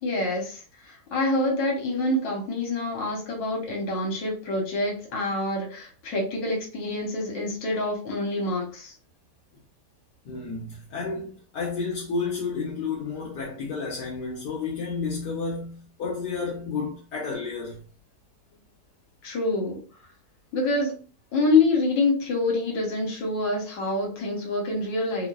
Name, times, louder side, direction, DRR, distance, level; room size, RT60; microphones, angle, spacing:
voice 1, 0.0-8.9 19.2-19.8 20.5-20.9 21.3-25.3, left 2 dB, 85° left, 1.7 m, -26 dB
voice 2, 10.2-17.8, left 4 dB, 70° left, 1.5 m, -31 dB
4.3 x 2.1 x 2.4 m
omnidirectional pair, 1.9 m